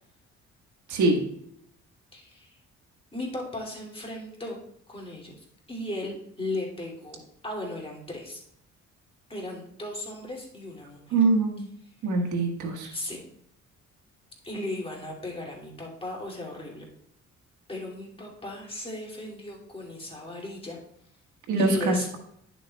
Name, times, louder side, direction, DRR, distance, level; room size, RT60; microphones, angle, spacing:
voice 1, 0.9-1.2 11.1-11.6 12.0-12.9 21.5-22.2, right 3 dB, 75° right, 2 dB, 1.5 m, -24 dB
voice 2, 2.1-2.5 3.1-4.6 4.9-5.3 5.7-7.2 7.4-8.4 9.3-11.0 12.9-13.2 14.4-16.8 17.7-20.8 21.6-22.1, left 1 dB, 20° left, -2 dB, 2.5 m, -36 dB
10.5 x 6.9 x 2.3 m, 0.73 s
cardioid pair, 90°, 30 cm